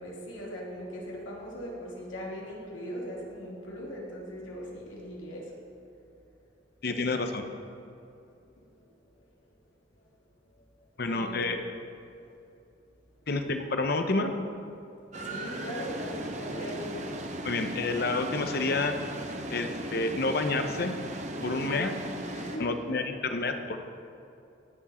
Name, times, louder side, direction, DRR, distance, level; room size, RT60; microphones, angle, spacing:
voice 1, 0.0-5.5 8.6-8.9 11.0-11.5 14.9-17.0 19.4-19.5 21.4-21.7 22.3-22.8, equal, 90° left, -4 dB, 2.9 m, -40 dB
voice 2, 6.8-7.4 11.0-11.6 13.3-14.3 17.4-19.0 19.5-20.9 21.4-21.9 22.6-23.8, left 3 dB, 55° left, 7 dB, 0.8 m, -29 dB
sound 1, 15.1-22.6, right 1 dB, 35° right, 0.9 m, -37 dB
18.5 x 7.2 x 4.3 m, 2.7 s
head